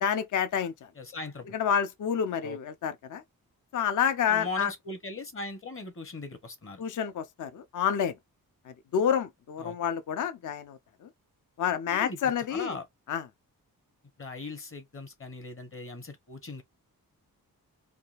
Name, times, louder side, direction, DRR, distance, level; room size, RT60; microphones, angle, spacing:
voice 1, 0.0-0.9 1.5-3.2 3.7-4.7 6.8-8.1 8.9-11.1 11.6-12.8 13.1-13.2, left 8 dB, 55° left, 0.5 m, -28 dB
voice 2, 0.9-1.6 2.4-2.6 4.3-6.8 9.6-9.8 11.9-12.9 14.2-16.6, left 3 dB, 35° left, 0.9 m, -39 dB
3.5 x 2.3 x 2.4 m
cardioid pair, 80°, 37 cm